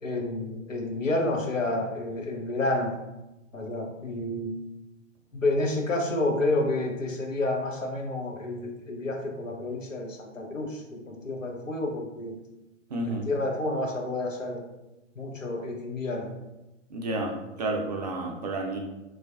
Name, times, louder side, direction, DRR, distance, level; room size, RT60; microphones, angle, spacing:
voice 1, 0.0-3.0 3.5-4.5 5.3-12.3 13.1-14.6 15.2-16.4, left 2 dB, 90° left, 1 dB, 0.7 m, -29 dB
voice 2, 12.9-13.2 16.9-17.3 17.6-18.8, right 2 dB, 35° right, 2 dB, 0.4 m, -30 dB
3.2 x 2.4 x 2.4 m, 1.0 s
figure-of-eight pair, 110°, 38 cm